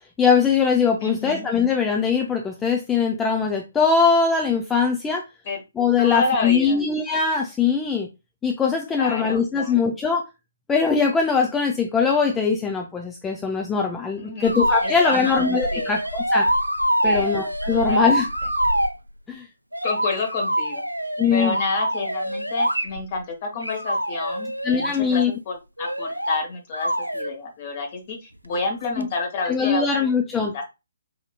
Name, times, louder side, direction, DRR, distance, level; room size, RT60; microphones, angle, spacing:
voice 1, 0.2-5.2 5.8-8.1 8.4-10.2 10.7-16.5 17.0-18.3 19.3-19.4 21.2-21.5 24.6-25.3 29.0-29.1 29.5-30.5, left 5 dB, 10° left, 2 dB, 0.4 m, -21 dB
voice 2, 1.0-1.5 5.4-5.6 6.0-6.8 8.9-9.8 14.2-14.6 14.8-15.9 17.0-17.3 17.7-18.2 19.8-20.8 21.3-30.6, left 3 dB, 35° left, 3 dB, 1.2 m, -29 dB
sound 1, 14.4-19.0 19.7-23.2 23.6-25.0 25.8-26.4 26.7-27.3 29.0-29.1, right 1 dB, 90° right, 0.3 m, -25 dB
4.9 x 2.8 x 2.2 m, 0.25 s
figure-of-eight pair, 135°, 0 cm